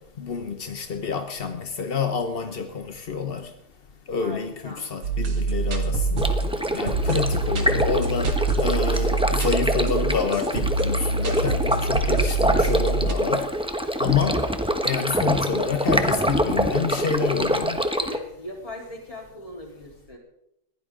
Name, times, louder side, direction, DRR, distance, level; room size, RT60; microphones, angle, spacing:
voice 1, 0.2-3.5 4.1-6.4 6.7-13.5 14.0-14.5 14.8-17.8, left 6 dB, 50° left, 0.7 m, -28 dB
voice 2, 4.2-4.9 17.9-20.2, left 1 dB, 15° left, 4.1 m, -39 dB
sound 1, 5.0-13.1, right 3 dB, 85° right, 2.8 m, -25 dB
Stream, 6.2-18.2, equal, 5° right, 0.4 m, -25 dB
21.0 x 15.5 x 3.8 m
omnidirectional pair, 2.3 m